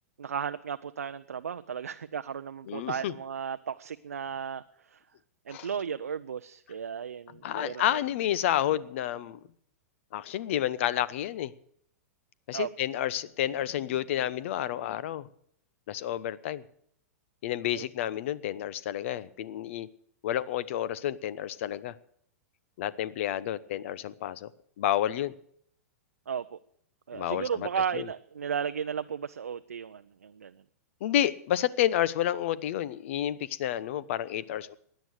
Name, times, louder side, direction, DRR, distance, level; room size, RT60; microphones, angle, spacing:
voice 1, 0.2-4.6 4.9-5.0 5.5-8.0 12.5-12.7 17.7-17.9 26.3-26.6 27.1-30.5, right 7 dB, 85° right, 9 dB, 0.5 m, -34 dB
voice 2, 2.7-3.1 5.5-5.7 7.4-9.4 10.1-11.5 12.5-15.3 15.9-16.6 17.4-19.9 20.2-21.9 22.8-24.5 24.8-25.3 27.1-27.7 27.9-28.1 31.0-34.7, left 12 dB, 60° left, 18 dB, 0.8 m, -30 dB
16.5 x 10.5 x 6.5 m, 0.65 s
hypercardioid pair, 105°, 8 cm